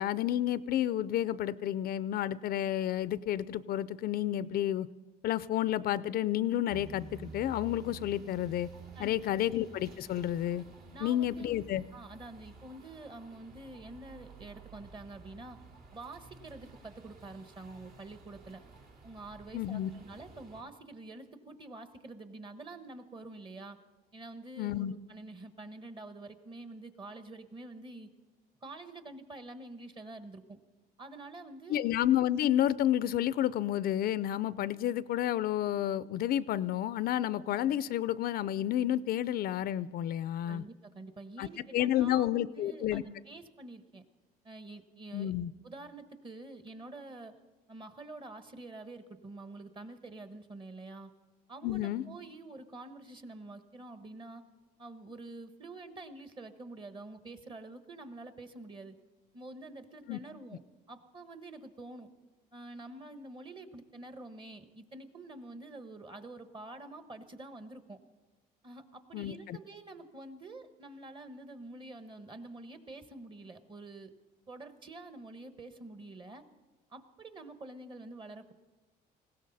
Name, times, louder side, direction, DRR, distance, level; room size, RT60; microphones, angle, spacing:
voice 1, 0.0-4.9 5.2-8.7 9.0-10.6 11.0-11.8 19.5-19.9 24.6-24.9 31.7-40.6 41.4-41.5 41.7-43.0 45.1-45.5 51.6-52.0 60.1-60.2 69.1-69.6, left 12 dB, 65° left, 17 dB, 0.5 m, -30 dB
sound 1, 6.7-20.6, right 3 dB, 60° right, 2.4 m, -52 dB
voice 2, 8.9-9.4 10.9-11.5 11.9-15.6 15.9-18.6 19.0-23.8 24.1-28.1 28.6-30.6 31.0-31.8 40.5-44.0 44.4-45.3 45.6-47.4 47.7-51.1 51.5-54.4 54.8-59.0 59.3-60.6 60.9-62.1 62.5-68.0 68.6-74.1 74.5-76.4 76.9-78.5, right 2 dB, 30° right, 9 dB, 1.2 m, -47 dB
20.0 x 16.5 x 4.1 m, 1.2 s
cardioid pair, 110°, 17 cm